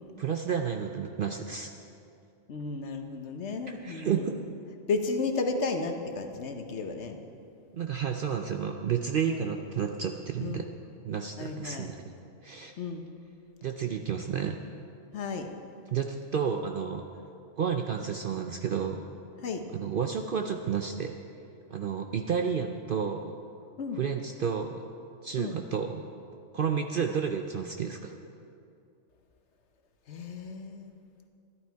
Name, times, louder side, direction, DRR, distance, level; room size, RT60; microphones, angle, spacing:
voice 1, 0.2-1.7 3.7-4.4 7.7-10.6 11.0-12.0 12.4-12.7 13.6-14.6 15.9-17.0 17.6-19.0 19.7-21.1 21.7-23.3 24.0-24.8 25.2-26.0 26.5-28.1, right 7 dB, 60° right, 4 dB, 0.6 m, -31 dB
voice 2, 2.5-4.3 4.9-7.2 9.3-9.5 10.4-10.7 11.4-11.9 12.8-13.1 15.1-15.5 19.4-19.6 23.8-24.0 25.4-25.6 30.1-30.9, left 4 dB, 60° left, 6 dB, 1.1 m, -33 dB
13.5 x 11.5 x 4.6 m, 2.6 s
omnidirectional pair, 1.4 m